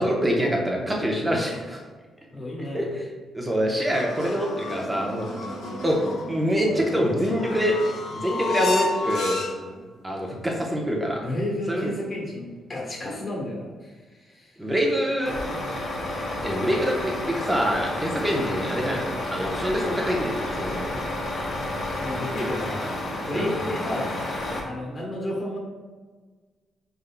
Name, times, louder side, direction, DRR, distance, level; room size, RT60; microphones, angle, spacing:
voice 1, 0.0-1.8 2.7-3.1 3.3-5.3 5.8-6.0 6.3-7.8 8.1-9.4 10.0-11.2 11.7-11.9 14.6-15.3 16.4-19.0 19.3-20.9 23.3-23.5, equal, 10° right, -1 dB, 0.9 m, -25 dB
voice 2, 2.3-2.8 10.5-10.6 11.2-14.6 15.5-15.7 18.4-18.5 22.0-22.9 23.2-24.1 24.6-25.6, left 1 dB, 30° left, -2 dB, 1.3 m, -32 dB
sound 1, 3.9-9.8, left 3 dB, 75° left, 1.5 m, -31 dB
Truck, 15.2-24.6, left 1 dB, 55° left, 1.1 m, -30 dB
5.2 x 3.6 x 2.3 m, 1.4 s
cardioid pair, 115°, 0 cm